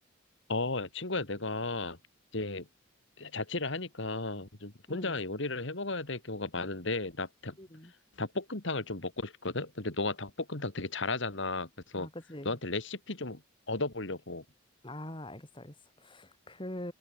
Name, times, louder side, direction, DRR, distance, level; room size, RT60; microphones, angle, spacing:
voice 1, 0.5-2.0 2.3-2.7 3.2-7.6 8.2-12.1 12.4-13.4 13.7-14.4, left 3 dB, 65° left, 2.7 m, -34 dB
voice 2, 4.9-5.2 7.6-7.9 11.9-12.6 14.8-16.9, left 1 dB, 25° left, 4.1 m, -43 dB
head